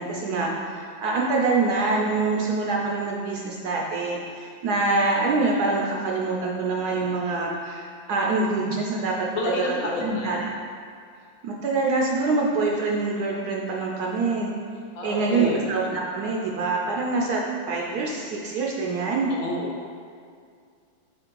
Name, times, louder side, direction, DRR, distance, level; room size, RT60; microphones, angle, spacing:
voice 1, 0.0-9.3 9.7-10.5 11.4-14.5 15.0-19.3, right 3 dB, 65° right, -2 dB, 1.0 m, -25 dB
voice 2, 9.3-10.4 14.9-15.7 19.3-19.7, left 2 dB, 55° left, -2 dB, 1.1 m, -29 dB
5.0 x 4.4 x 4.5 m, 2.2 s
omnidirectional pair, 2.0 m